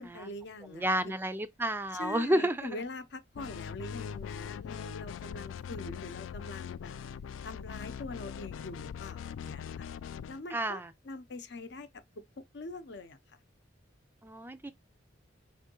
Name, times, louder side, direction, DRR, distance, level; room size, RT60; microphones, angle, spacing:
voice 1, 0.0-1.2 1.9-7.0 7.4-9.9 10.3-12.0 12.5-13.2, left 2 dB, 60° left, 0.7 m, -43 dB
voice 2, 0.7-2.7 10.5-10.9 14.2-14.7, right 1 dB, 10° right, 0.4 m, -30 dB
sound 1, 3.4-10.4, left 8 dB, 85° left, 0.3 m, -41 dB
5.3 x 3.4 x 2.9 m
head